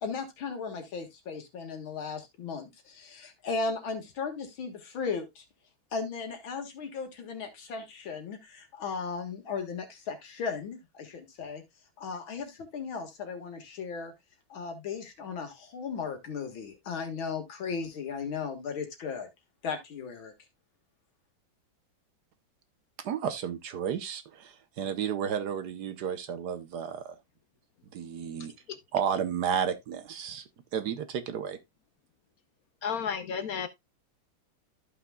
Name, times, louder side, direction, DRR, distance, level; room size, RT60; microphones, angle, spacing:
voice 1, 0.0-5.4 5.9-11.6 12.0-14.1 14.5-19.3 19.6-20.3, left 5 dB, 85° left, 2.5 m, -36 dB
voice 2, 23.0-27.1 27.9-28.5 28.9-31.6, right 8 dB, 65° right, 1.3 m, -32 dB
voice 3, 32.8-33.7, left 7 dB, 65° left, 1.0 m, -32 dB
14.0 x 5.8 x 2.3 m
omnidirectional pair, 2.1 m